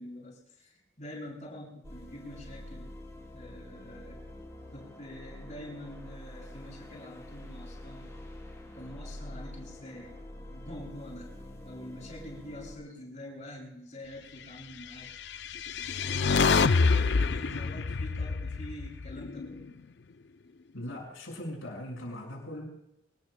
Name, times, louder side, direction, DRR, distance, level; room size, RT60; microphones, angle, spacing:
voice 1, 0.0-2.9 3.3-4.2 4.7-8.1 8.7-11.3 11.6-15.1 16.0-19.7, left 1 dB, 35° left, -1 dB, 6.8 m, -45 dB
sound 1, 1.8-12.8, left 1 dB, 15° left, 5.0 m, -46 dB
sound 2, 15.3-19.6, left 4 dB, 60° left, 0.5 m, -27 dB
voice 2, 20.7-22.7, left 1 dB, 90° left, -1 dB, 6.1 m, -40 dB
28.0 x 19.0 x 2.3 m, 0.82 s
head